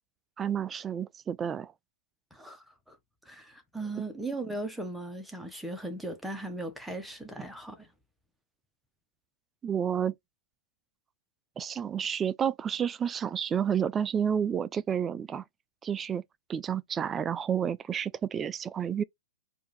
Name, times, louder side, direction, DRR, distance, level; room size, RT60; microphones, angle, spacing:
voice 1, 0.4-1.7 9.6-10.1 11.6-15.4 15.8-16.2 16.5-19.0, right 8 dB, 20° right, 0.4 m, -30 dB
voice 2, 2.3-3.0 3.3-7.9, right 2 dB, ahead, 1.2 m, -38 dB
4.5 x 2.7 x 3.3 m
hypercardioid pair, 120°, 0 cm